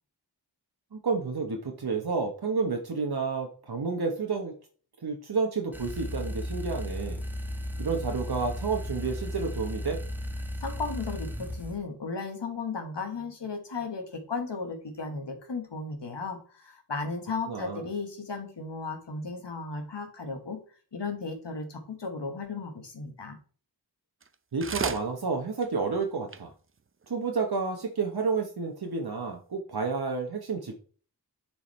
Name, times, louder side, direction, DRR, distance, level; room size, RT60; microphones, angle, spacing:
voice 1, 0.9-4.5 5.0-7.2 7.8-10.0 17.5-17.8 24.5-26.5 27.1-30.8, right 4 dB, 65° right, 2 dB, 1.0 m, -30 dB
sound 1, 5.7-11.8, left 1 dB, 5° right, 1.3 m, -35 dB
voice 2, 10.6-20.6 20.9-23.4, left 4 dB, 90° left, 5 dB, 1.5 m, -35 dB
sound 2, 24.2-24.3 24.6-25.1 25.6-25.7 26.0-26.1 26.3-26.4 27.0-27.1, right 5 dB, 30° right, 0.5 m, -33 dB
7.1 x 4.7 x 3.2 m, 0.41 s
wide cardioid pair, 40°, 41 cm